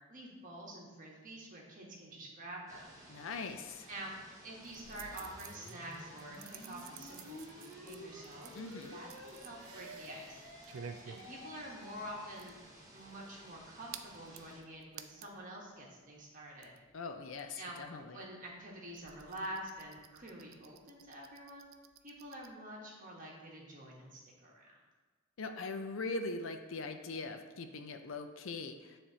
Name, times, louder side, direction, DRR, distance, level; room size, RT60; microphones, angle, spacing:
voice 1, 0.1-3.0 3.9-4.1 4.4-8.5 8.9-10.4 11.1-12.6 12.9-16.8 17.6-17.8 18.1-21.7 22.0-24.7, right 1 dB, 40° right, -2 dB, 1.3 m, -47 dB
sound 1, 2.7-14.6, right 1 dB, 15° right, 0.9 m, -57 dB
voice 2, 3.1-3.9 8.5-9.0 16.9-18.2 25.4-29.0, left 3 dB, 70° left, 7 dB, 0.5 m, -41 dB
sound 2, 4.6-15.5 15.8-22.5, right 8 dB, 70° right, 0.4 m, -54 dB
sound 3, 4.7-12.5, left 1 dB, 85° left, 1.7 m, -52 dB
9.7 x 3.5 x 2.8 m, 1.4 s
head